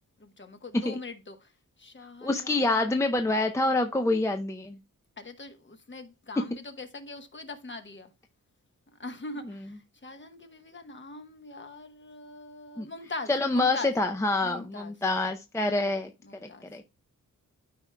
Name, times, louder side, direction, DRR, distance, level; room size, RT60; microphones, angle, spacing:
voice 1, 0.2-1.5 1.8-3.0 5.2-8.1 9.0-13.9 14.4-14.9 16.2-16.7, left 2 dB, 35° left, 1.1 m, -42 dB
voice 2, 2.2-4.8 12.8-12.9 13.3-16.1 16.4-16.8, left 2 dB, 10° left, 0.5 m, -26 dB
12.5 x 4.6 x 2.2 m
wide cardioid pair, 105°, 33 cm